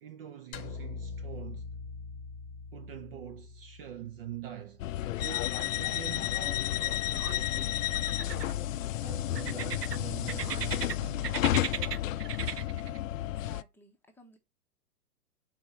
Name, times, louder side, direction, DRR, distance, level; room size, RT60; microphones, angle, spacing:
voice 1, 0.0-1.7 2.7-4.8 5.1-8.6 9.0-11.5, right 10 dB, 40° right, 0.6 m, -45 dB
sound 1, 0.5-4.9, left 4 dB, 35° left, 1.0 m, -43 dB
sound 2, 4.8-13.6, left 13 dB, 60° left, 0.5 m, -31 dB
sound 3, 5.6-6.1 6.4-7.4 7.9-8.8 9.3-10.9 11.2-13.0, right 9 dB, 85° right, 0.7 m, -37 dB
voice 2, 13.2-14.4, left 1 dB, 5° left, 0.9 m, -57 dB
5.7 x 4.2 x 4.4 m
hypercardioid pair, 115°, 46 cm